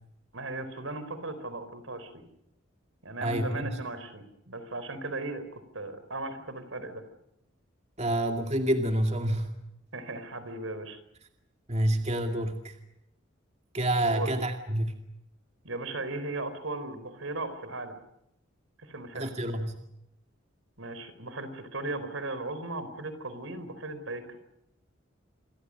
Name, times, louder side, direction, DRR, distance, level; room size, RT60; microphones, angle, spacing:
voice 1, 0.3-2.2 3.0-7.0 9.9-11.0 14.1-14.3 15.6-18.0 18.8-19.3 20.8-24.4, right 2 dB, 80° right, 12 dB, 4.5 m, -37 dB
voice 2, 3.2-3.7 8.0-9.5 11.7-12.7 13.7-14.9 19.1-19.8, right 1 dB, 35° right, 5 dB, 2.3 m, -28 dB
28.5 x 24.0 x 6.5 m, 0.82 s
head